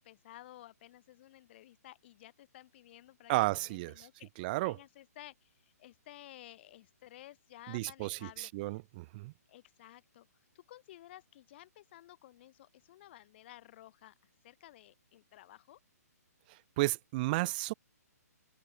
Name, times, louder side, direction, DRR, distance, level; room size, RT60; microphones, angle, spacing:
voice 1, 0.0-4.3 4.6-8.8 9.5-10.3 10.5-14.2 14.4-15.8, left 14 dB, 40° left, 7.3 m, -54 dB
voice 2, 3.3-4.1 4.4-4.8 7.7-9.3 16.5-17.7, right 21 dB, 30° right, 2.3 m, -33 dB
open air
hypercardioid pair, 145°, 9 cm